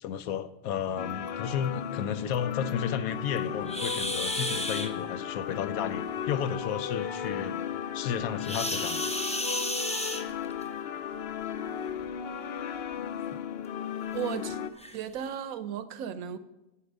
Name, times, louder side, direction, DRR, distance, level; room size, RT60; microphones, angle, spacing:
voice 1, 0.0-7.6 7.9-9.0, left 8 dB, 80° left, 12 dB, 1.0 m, -33 dB
sound 1, 1.0-14.7, left 8 dB, 60° left, 0.7 m, -35 dB
sound 2, 3.7-4.9 8.4-10.7 11.9-12.1 12.6-12.7 13.3-13.4 14.2-14.3 14.8-15.0, left 1 dB, 5° left, 0.5 m, -32 dB
voice 2, 14.1-14.6 14.9-16.4, right 8 dB, 75° right, 13 dB, 1.1 m, -35 dB
8.6 x 8.5 x 5.2 m, 0.97 s
omnidirectional pair, 1.5 m